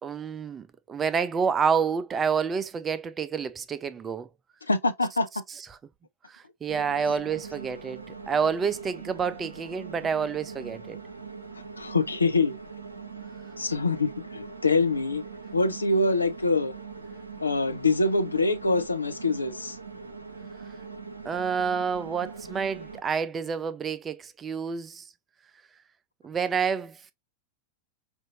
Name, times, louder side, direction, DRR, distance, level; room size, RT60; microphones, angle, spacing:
voice 1, 0.0-4.3 6.3-11.0 21.2-25.0 26.2-27.0, right 6 dB, 20° right, 0.4 m, -28 dB
voice 2, 4.7-5.3 11.8-12.6 13.6-15.2 15.5-16.7 17.4-19.8, left 3 dB, 80° left, 0.6 m, -25 dB
sound 1, 6.7-23.0, right 5 dB, 80° right, 0.7 m, -42 dB
5.1 x 2.5 x 2.9 m
figure-of-eight pair, 90°, 0 cm